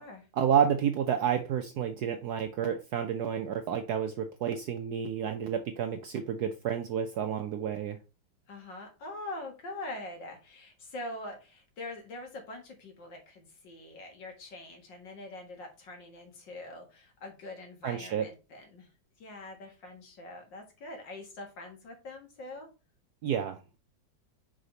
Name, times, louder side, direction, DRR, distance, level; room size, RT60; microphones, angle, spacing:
voice 1, 0.4-8.0 17.8-18.3 23.2-23.6, right 8 dB, 70° right, 7 dB, 0.9 m, -30 dB
voice 2, 8.5-18.9 19.2-22.7, left 2 dB, 65° left, 2 dB, 2.3 m, -44 dB
5.0 x 4.9 x 3.9 m, 0.31 s
omnidirectional pair, 2.2 m